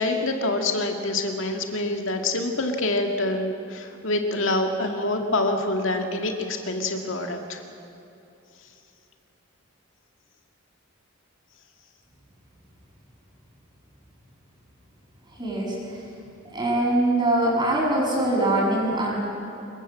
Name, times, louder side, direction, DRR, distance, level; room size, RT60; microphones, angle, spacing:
voice 1, 0.0-7.6, left 2 dB, 70° left, 4 dB, 2.2 m, -26 dB
voice 2, 15.4-15.8 16.5-19.2, right 1 dB, 20° right, -3 dB, 7.4 m, -22 dB
25.5 x 22.5 x 7.7 m, 2.9 s
head